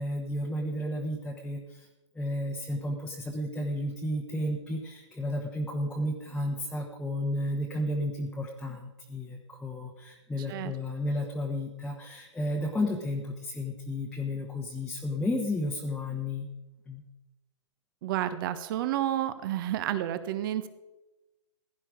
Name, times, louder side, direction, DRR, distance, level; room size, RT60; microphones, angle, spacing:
voice 1, 0.0-1.9 2.1-16.5 16.9-17.0, left 1 dB, 5° left, -1 dB, 1.3 m, -32 dB
voice 2, 18.0-20.7, right 12 dB, 45° right, 12 dB, 1.2 m, -30 dB
16.0 x 10.0 x 5.0 m, 1.0 s
hypercardioid pair, 130°, 16 cm